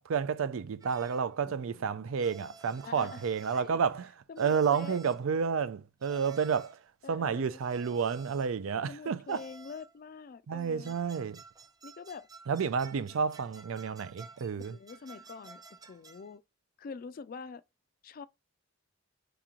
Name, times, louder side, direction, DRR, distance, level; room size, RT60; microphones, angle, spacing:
voice 1, 0.0-4.1 4.4-6.8 7.1-9.4 10.5-11.4 12.5-14.8, right 6 dB, 85° right, 0.4 m, -30 dB
sound 1, 0.8-1.3 2.2-3.8 4.4-5.3 6.0-6.9 7.6-8.6 9.3-10.0 10.6-16.3, right 4 dB, 20° right, 0.5 m, -54 dB
voice 2, 1.5-2.4 2.8-3.2 3.5-3.8 4.3-5.1 7.0-7.6 8.9-10.9 11.8-12.3 14.6-15.6 15.9-16.4 16.8-17.6 18.0-18.3, left 5 dB, 45° left, 0.3 m, -45 dB
4.9 x 2.9 x 3.7 m
head